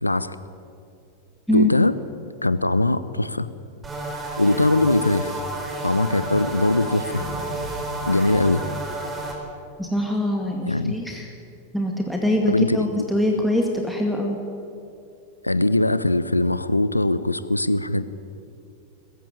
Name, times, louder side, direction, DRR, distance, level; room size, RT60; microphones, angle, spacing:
voice 1, 0.0-0.4 1.5-1.9 2.4-3.5 4.4-5.4 5.8-7.2 8.0-8.6 10.7-11.0 12.5-12.9 13.1-13.5 15.4-18.0, left 2 dB, 85° left, 15 dB, 0.8 m, -21 dB
sound 1, 3.8-9.4, right 2 dB, 15° right, 4.1 m, -31 dB
sound 2, 7.2-9.7, equal, 55° left, 5.4 m, -39 dB
voice 2, 9.8-11.3 11.7-14.4, left 1 dB, ahead, 0 dB, 2.2 m, -23 dB
21.0 x 14.5 x 8.6 m, 2.6 s
figure-of-eight pair, 90°, 0 cm